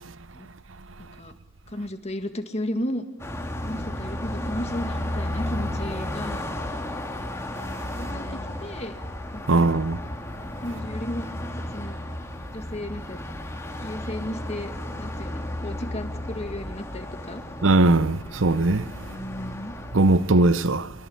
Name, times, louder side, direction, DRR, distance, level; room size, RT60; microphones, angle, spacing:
voice 1, 1.0-1.3 1.7-3.1 3.6-6.5 7.9-8.9 9.3-9.7 10.6-11.3 11.7-12.0 12.5-13.2 13.8-14.7 15.0-17.4 19.0-19.8, left 1 dB, 35° left, 2.0 m, -34 dB
Car passing by, 3.2-20.4, left 1 dB, 15° left, 2.5 m, -33 dB
voice 2, 9.5-10.0 17.6-18.9 19.9-20.9, right 2 dB, 85° right, 0.8 m, -19 dB
25.0 x 22.5 x 7.3 m
head